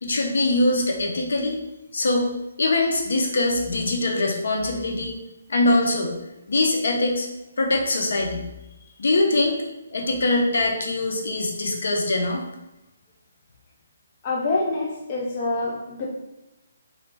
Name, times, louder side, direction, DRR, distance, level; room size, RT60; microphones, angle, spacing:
voice 1, 0.0-1.6 1.9-2.3 2.6-5.2 5.5-6.2 6.5-7.3 7.6-8.4 9.0-9.6 9.9-12.4, left 2 dB, 70° left, 1 dB, 0.8 m, -22 dB
voice 2, 14.2-16.1, left 2 dB, 25° left, -3 dB, 0.5 m, -26 dB
3.1 x 2.8 x 3.4 m, 0.94 s
hypercardioid pair, 175°, 0 cm